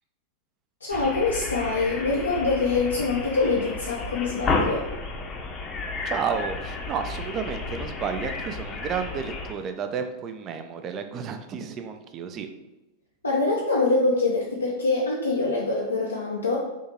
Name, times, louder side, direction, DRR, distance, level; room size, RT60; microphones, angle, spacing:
voice 1, 0.8-4.9 13.2-16.6, left 3 dB, 75° left, -3 dB, 0.4 m, -24 dB
sound 1, 0.9-9.5, left 3 dB, 25° left, 0.6 m, -32 dB
voice 2, 6.0-12.5, right 6 dB, 30° right, 8 dB, 0.3 m, -31 dB
3.5 x 2.7 x 2.8 m, 1.0 s
figure-of-eight pair, 90°, 0 cm